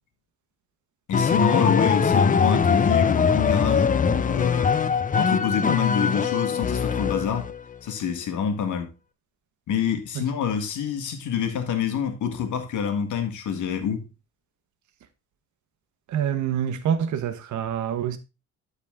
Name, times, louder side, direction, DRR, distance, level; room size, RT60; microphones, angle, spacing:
voice 1, 1.1-4.7 5.1-7.5 7.8-8.9 9.7-14.1, left 7 dB, 80° left, 1.6 m, -27 dB
sound 1, 1.1-7.6, left 6 dB, 25° left, 0.6 m, -22 dB
voice 2, 16.1-18.2, right 9 dB, 75° right, 1.1 m, -26 dB
12.0 x 4.1 x 3.5 m
cardioid pair, 90°, 30 cm